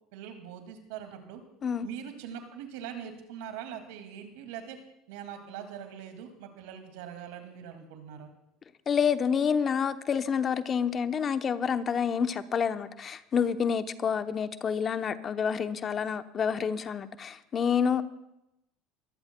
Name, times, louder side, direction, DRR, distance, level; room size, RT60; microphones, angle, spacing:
voice 1, 0.1-1.4 1.8-4.8 5.1-8.3, right 9 dB, 75° right, 5 dB, 2.2 m, -42 dB
voice 2, 8.9-18.0, left 7 dB, 40° left, 11 dB, 0.8 m, -28 dB
23.0 x 15.5 x 2.3 m, 0.86 s
hypercardioid pair, 80°, 0 cm